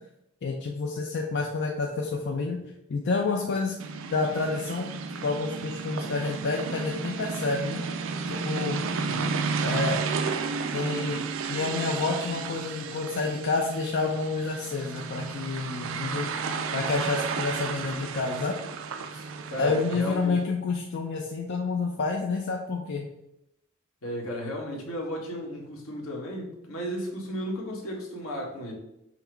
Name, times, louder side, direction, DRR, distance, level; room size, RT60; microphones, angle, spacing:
voice 1, 0.4-2.6 2.9-3.7 4.1-4.9 5.2-7.8 8.3-8.8 9.6-10.0 10.7-11.2 11.5-16.4 16.7-18.5 19.1-19.2 19.6-23.1, left 4 dB, 55° left, 1 dB, 0.4 m, -29 dB
sound 1, 3.8-20.2, right 5 dB, 65° right, 0.4 m, -32 dB
voice 2, 9.1-9.4 19.5-20.4 24.0-28.7, equal, 75° left, -1 dB, 1.2 m, -34 dB
5.7 x 2.0 x 4.5 m, 0.85 s
head